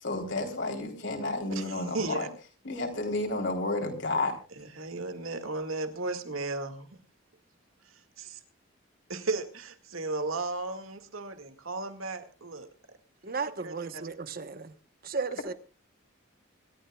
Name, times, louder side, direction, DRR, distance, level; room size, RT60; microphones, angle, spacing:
voice 1, 0.0-2.3 2.7-4.4, left 2 dB, 60° left, 3.6 m, -31 dB
voice 2, 1.5-2.3 4.6-7.0 7.8-8.4 9.1-12.7 13.6-14.0, right 3 dB, 85° right, 2.1 m, -35 dB
voice 3, 13.2-14.7 15.0-15.5, right 4 dB, 45° right, 1.1 m, -34 dB
26.0 x 13.5 x 2.4 m
head